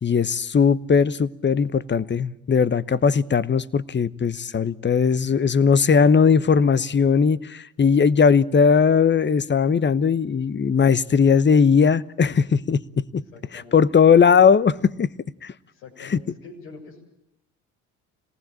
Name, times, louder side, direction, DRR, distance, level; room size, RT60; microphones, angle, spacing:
voice 1, 0.0-13.2 13.5-15.1 15.4-15.5, left 6 dB, 30° left, 1.1 m, -19 dB
voice 2, 13.3-13.8 15.7-17.0, left 4 dB, 80° left, 7.2 m, -44 dB
26.0 x 19.0 x 9.1 m
hypercardioid pair, 55°, 37 cm